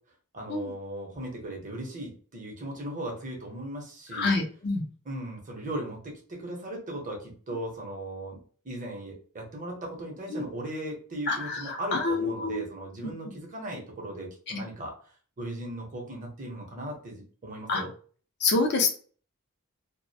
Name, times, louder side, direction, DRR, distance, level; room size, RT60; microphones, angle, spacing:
voice 1, 0.3-4.4 5.0-8.4 8.6-14.9 15.4-17.9, right 1 dB, 35° right, 0 dB, 0.7 m, -37 dB
voice 2, 4.1-4.8 10.3-10.5 11.3-12.6 13.0-13.1 14.5-14.6 17.7-17.8 18.4-18.9, left 3 dB, 50° left, 2 dB, 0.5 m, -27 dB
2.4 x 2.1 x 2.6 m, 0.42 s
head